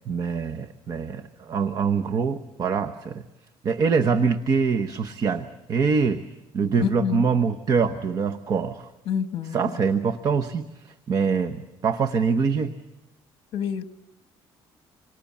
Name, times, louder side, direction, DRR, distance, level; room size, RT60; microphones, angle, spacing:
voice 1, 0.1-3.3 3.6-6.2 6.5-8.9 9.5-12.7, right 5 dB, 40° right, 9 dB, 1.1 m, -24 dB
voice 2, 6.8-7.3 9.1-9.7 13.5-13.8, left 8 dB, 60° left, 10 dB, 1.1 m, -27 dB
27.5 x 24.5 x 7.3 m, 0.92 s
cardioid pair, 155°, 10 cm